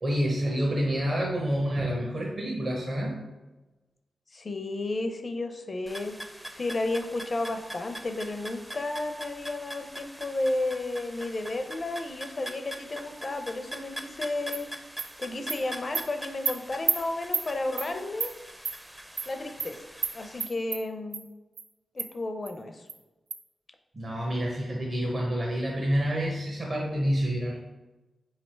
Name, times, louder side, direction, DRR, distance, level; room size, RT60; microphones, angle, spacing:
voice 1, 0.0-3.2 23.9-27.6, equal, 45° right, -3 dB, 0.8 m, -28 dB
voice 2, 4.3-6.2 6.5-14.7 15.2-18.3 19.3-19.8 20.1-21.3 21.9-22.8, left 2 dB, 45° left, 7 dB, 0.5 m, -32 dB
sound 1, 5.9-20.5, equal, 10° right, 0.5 m, -43 dB
Animal, 14.5-14.6 15.0-15.1 15.5-15.6 15.9-16.0 16.5-16.6 16.9-17.0 17.3-17.5 17.8-17.9 18.2-18.3 18.6-18.8 19.2-19.3 19.6-19.7 20.0-20.1 20.4-20.8 21.1-21.2 21.6-21.7 22.0-22.1 22.5-22.6 22.9-23.0 23.3-23.4, right 6 dB, 85° right, 0.3 m, -29 dB
3.7 x 3.2 x 4.4 m, 1.1 s
cardioid pair, 60°, 0 cm